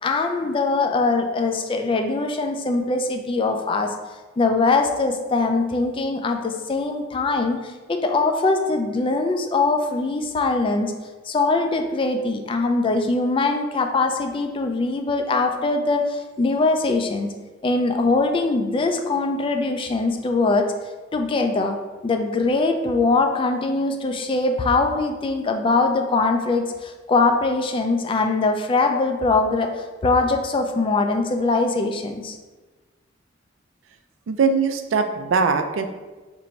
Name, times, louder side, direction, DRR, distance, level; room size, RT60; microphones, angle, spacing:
voice 1, 0.0-3.9 4.4-10.9 11.3-17.3 17.6-20.7 21.1-21.8 22.0-32.4, left 3 dB, 25° left, 5 dB, 0.3 m, -22 dB
voice 2, 34.3-35.9, right 5 dB, 75° right, 7 dB, 0.4 m, -21 dB
2.9 x 2.6 x 4.4 m, 1.3 s
head